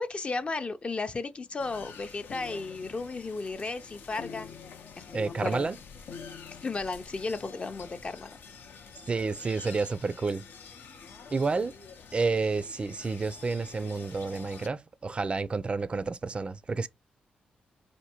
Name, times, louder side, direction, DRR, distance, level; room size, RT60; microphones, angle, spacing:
voice 1, 0.0-4.5 5.0-5.7 6.6-8.4, left 3 dB, 35° left, 0.4 m, -34 dB
sound 1, 1.6-14.7, left 6 dB, 80° left, 0.6 m, -47 dB
voice 2, 5.1-5.8 9.1-10.4 11.3-11.7 12.1-16.9, right 4 dB, 35° right, 0.3 m, -30 dB
4.3 x 2.6 x 2.8 m
cardioid pair, 80°, 3 cm